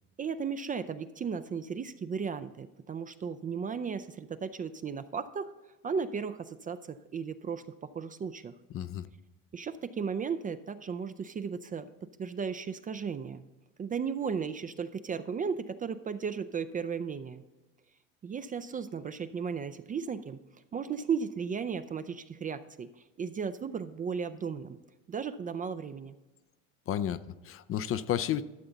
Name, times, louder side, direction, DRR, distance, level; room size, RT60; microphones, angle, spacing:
voice 1, 0.2-5.5 5.8-8.5 9.5-11.9 12.2-13.4 13.8-17.4 18.2-20.4 20.7-22.9 23.2-24.8 25.1-26.1, right 6 dB, 25° right, 12 dB, 0.4 m, -35 dB
voice 2, 8.7-9.1 26.9-28.4, left 10 dB, 35° left, 14 dB, 0.4 m, -32 dB
13.0 x 6.8 x 3.9 m, 1.1 s
supercardioid pair, 85°, 37 cm